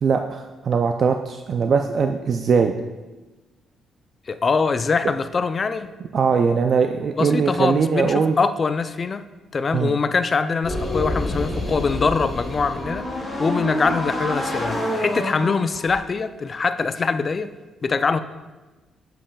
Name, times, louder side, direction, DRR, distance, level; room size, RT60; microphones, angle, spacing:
voice 1, 0.0-2.7 6.1-8.4 9.7-10.0, right 5 dB, 55° right, 5 dB, 0.4 m, -20 dB
voice 2, 4.3-5.9 7.2-9.3 9.5-17.5 17.8-18.2, left 4 dB, 40° left, 11 dB, 0.4 m, -23 dB
sound 1, 10.6-16.0, left 1 dB, 15° left, 2.1 m, -27 dB
8.4 x 7.6 x 2.3 m, 1.2 s
cardioid pair, 90°, 0 cm